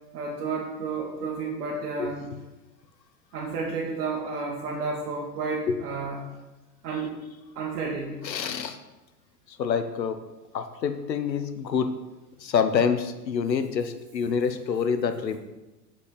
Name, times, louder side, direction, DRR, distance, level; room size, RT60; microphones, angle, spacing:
voice 1, 0.1-2.2 3.3-6.2 6.8-7.1 7.6-8.2, right 4 dB, 65° right, -4 dB, 2.0 m, -31 dB
voice 2, 8.2-8.8 9.5-10.2 10.5-11.9 12.4-15.4, left 6 dB, 85° left, 9 dB, 1.1 m, -27 dB
8.5 x 5.3 x 6.7 m, 1.1 s
hypercardioid pair, 100°, 49 cm